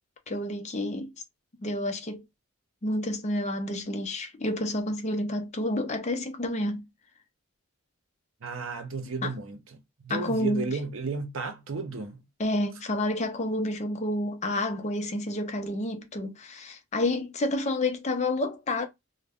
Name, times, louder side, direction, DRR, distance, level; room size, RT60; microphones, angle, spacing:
voice 1, 0.3-1.1 1.6-2.2 2.8-6.8 9.2-9.3 10.1-10.8 12.4-18.9, left 1 dB, 35° left, 0.5 m, -29 dB
voice 2, 8.4-12.2, right 4 dB, 85° right, 0.7 m, -34 dB
2.5 x 2.2 x 3.4 m
head